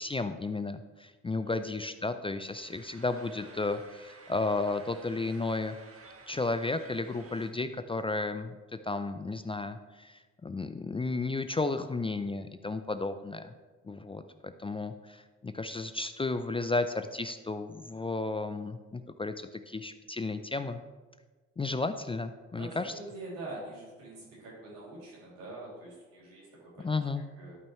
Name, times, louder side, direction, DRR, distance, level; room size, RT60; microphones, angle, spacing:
voice 1, 0.0-5.8 6.3-8.6 8.8-13.5 13.8-20.8 21.6-22.9 26.8-27.2, left 3 dB, 15° left, 10 dB, 0.4 m, -33 dB
sound 1, 2.5-7.5, right 3 dB, 35° right, 1.2 m, -53 dB
voice 2, 22.5-26.9 27.4-27.6, right 2 dB, 85° right, -6 dB, 2.8 m, -44 dB
12.0 x 5.3 x 3.1 m, 1.3 s
hypercardioid pair, 55°, 38 cm